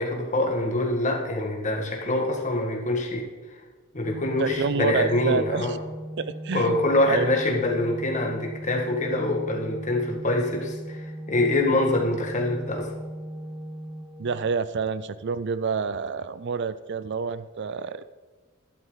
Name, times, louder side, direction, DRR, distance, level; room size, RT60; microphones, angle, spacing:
voice 1, 0.0-3.3 3.9-5.8 6.5-12.9, left 2 dB, 35° left, 1 dB, 1.9 m, -25 dB
Organ, 4.0-14.9, right 1 dB, 5° right, 0.6 m, -38 dB
voice 2, 4.4-5.8 6.2-7.5 14.2-18.0, right 5 dB, 55° right, 15 dB, 0.4 m, -28 dB
12.0 x 11.5 x 4.0 m, 1.4 s
head